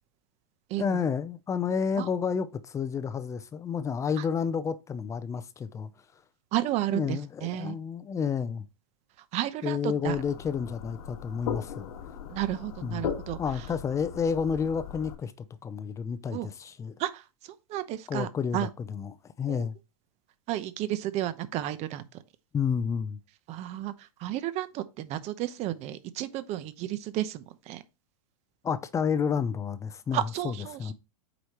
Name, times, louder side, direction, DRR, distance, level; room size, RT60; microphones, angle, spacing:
voice 1, 0.8-5.9 6.9-8.6 9.6-11.9 12.8-13.1 13.4-15.3 15.6-16.9 18.1-19.8 22.5-23.2 28.6-30.9, left 6 dB, 15° left, 0.6 m, -30 dB
voice 2, 6.5-7.7 9.3-10.1 12.3-13.4 16.3-16.5 17.0-17.2 17.7-18.3 18.5-18.7 19.5-19.7 20.5-22.0 23.5-23.9 24.2-27.8 30.1-30.9, right 14 dB, 35° right, 0.9 m, -32 dB
sound 1, 10.1-15.1, left 8 dB, 80° left, 1.7 m, -38 dB
8.1 x 5.0 x 3.0 m
supercardioid pair, 135°, 19 cm